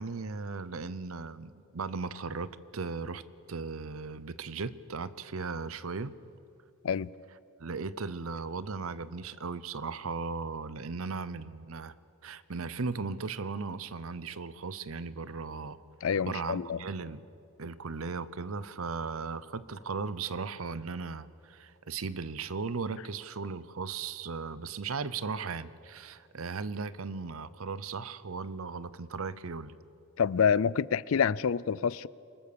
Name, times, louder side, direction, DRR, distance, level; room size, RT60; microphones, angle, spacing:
voice 1, 0.0-3.2 3.5-6.1 7.6-11.9 12.2-15.8 16.2-17.3 17.6-29.7, right 4 dB, 80° right, 0.7 m, -37 dB
voice 2, 16.0-16.8 30.2-32.1, left 7 dB, 80° left, 0.4 m, -27 dB
25.0 x 21.0 x 6.9 m
head